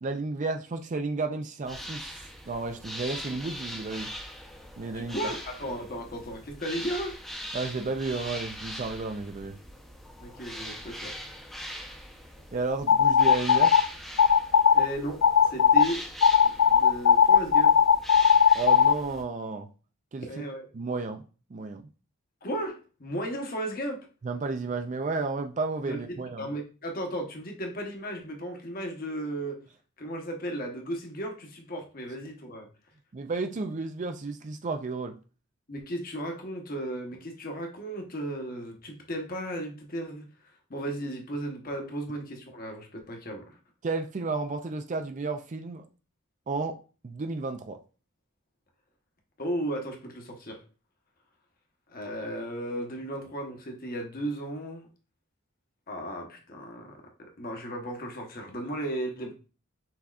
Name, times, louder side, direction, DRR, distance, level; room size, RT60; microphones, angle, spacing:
voice 1, 0.0-2.0 2.5-4.1 4.8-5.2 7.5-9.6 12.5-13.7 18.5-19.7 20.1-20.3 20.7-21.2 21.5-21.8 24.2-26.5 33.1-35.2 43.8-45.8 46.5-46.8 47.0-47.8, right 3 dB, 35° right, 0.4 m, -32 dB
sound 1, 1.7-19.2, equal, ahead, 0.7 m, -41 dB
voice 2, 4.9-7.2 10.2-11.2 14.7-16.0 16.4-17.8 20.3-20.7 22.4-24.1 25.8-29.6 30.0-32.7 35.7-40.3 40.7-43.6 49.4-50.6 51.9-54.9 55.9-59.3, right 1 dB, 45° left, 1.0 m, -35 dB
sound 2, 12.9-13.8 14.2-14.9 15.2-15.8 16.2-18.9, left 7 dB, 75° left, 0.4 m, -18 dB
6.1 x 3.4 x 2.4 m
head